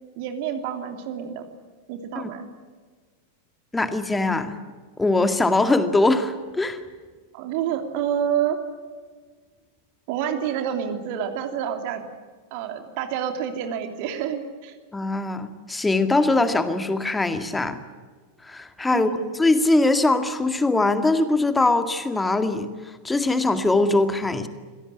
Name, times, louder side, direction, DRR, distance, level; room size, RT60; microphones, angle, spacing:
voice 1, 0.1-1.5 1.9-2.5 7.3-8.6 10.1-12.1 12.5-14.8 18.9-19.3, right 9 dB, 45° right, 6 dB, 2.9 m, -28 dB
voice 2, 3.7-4.6 5.0-6.8 14.9-17.8 18.4-19.1 19.3-22.7 23.0-24.5, left 2 dB, 10° left, 9 dB, 2.1 m, -21 dB
26.0 x 17.5 x 10.0 m, 1.5 s
figure-of-eight pair, 90°, 0 cm